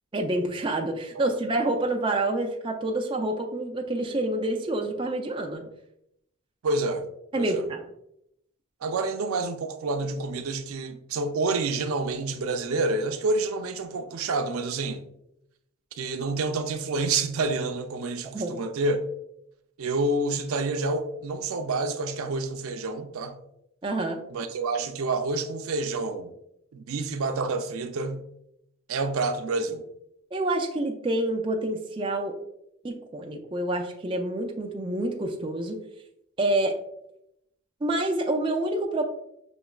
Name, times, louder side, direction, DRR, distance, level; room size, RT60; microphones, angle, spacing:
voice 1, 0.1-5.6 7.3-7.8 18.3-18.5 23.8-24.2 30.3-32.3 32.8-35.8 36.4-36.8 37.8-39.0, right 1 dB, 25° right, 0.4 m, -27 dB
voice 2, 6.6-7.0 7.4-7.6 8.8-15.0 15.9-19.0 19.8-23.4 24.3-26.3 26.7-28.2 28.9-29.8, right 3 dB, 90° right, 0.5 m, -28 dB
6.1 x 3.0 x 2.3 m
head